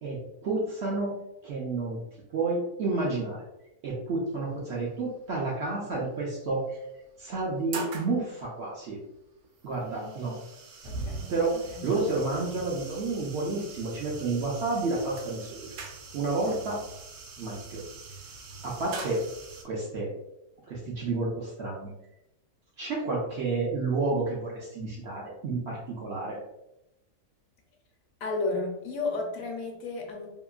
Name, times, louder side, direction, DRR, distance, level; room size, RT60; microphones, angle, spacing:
voice 1, 0.0-1.2 1.4-2.0 2.3-3.4 3.8-6.8 7.2-9.0 9.6-10.4 11.3-15.7 16.1-16.8 17.4-17.8 18.6-19.2 19.6-20.1 20.7-21.9 22.8-26.4, right 3 dB, 65° right, -4 dB, 0.7 m, -30 dB
sound 1, 4.6-4.9 6.1-6.2 6.7-6.8 7.3-8.1 9.2-19.6, right 3 dB, 85° right, 1.1 m, -42 dB
voice 2, 10.8-11.3 11.7-11.8 28.2-30.3, left 3 dB, 70° left, 1 dB, 1.0 m, -32 dB
2.8 x 2.5 x 2.3 m, 0.88 s
omnidirectional pair, 1.6 m